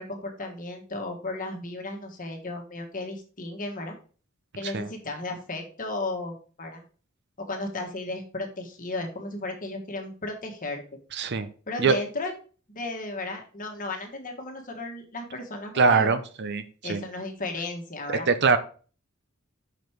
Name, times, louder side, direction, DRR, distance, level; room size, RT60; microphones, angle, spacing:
voice 1, 0.0-4.0 4.6-6.8 7.4-10.8 11.7-12.3 12.7-16.1 16.8-18.3, left 2 dB, 40° left, 3 dB, 1.5 m, -34 dB
voice 2, 11.1-11.5 11.8-11.9 15.8-16.6 16.9-17.0 18.1-18.6, right 5 dB, 55° right, 11 dB, 0.7 m, -22 dB
6.0 x 5.2 x 4.5 m, 0.39 s
head